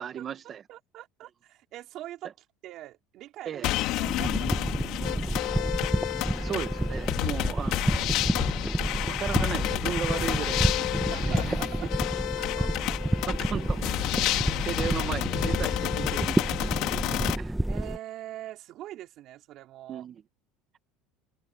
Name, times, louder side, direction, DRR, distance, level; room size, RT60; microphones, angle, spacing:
voice 1, 0.0-0.6 3.4-3.7 6.2-8.4 9.1-11.9 13.2-17.5 19.9-20.2, right 8 dB, 35° right, 1.3 m, -36 dB
voice 2, 0.7-2.3 2.6-3.7 3.9-4.6 4.9-5.7 11.0-11.9 12.4-12.7 13.3-13.4 17.7-20.0, right 14 dB, 50° right, 4.4 m, -43 dB
sound 1, 3.6-17.4, left 17 dB, 60° left, 2.7 m, -30 dB
sound 2, 4.0-18.0, right 1 dB, 5° right, 1.4 m, -29 dB
cardioid pair, 135°, 0 cm